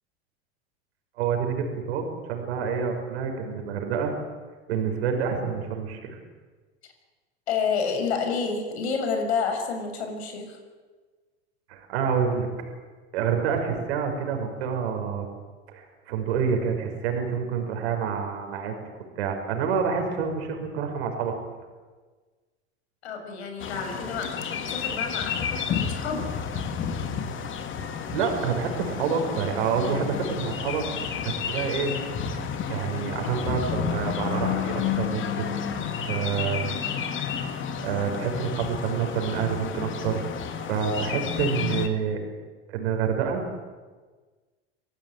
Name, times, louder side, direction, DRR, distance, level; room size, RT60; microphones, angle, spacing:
voice 1, 1.2-4.1 4.7-6.2 11.7-12.5 13.1-15.3 15.7-18.8 19.2-21.4 28.1-30.8 31.2-31.9 32.7-35.6 36.1-36.8 37.8-40.2 40.6-42.2 42.7-43.5, right 6 dB, 75° right, 3 dB, 5.5 m, -27 dB
voice 2, 7.5-10.6 23.0-26.5, left 5 dB, 80° left, 4 dB, 6.8 m, -29 dB
sound 1, 23.6-41.9, left 7 dB, 40° left, 2.7 m, -31 dB
26.5 x 18.0 x 9.2 m, 1.4 s
hypercardioid pair, 100°, 32 cm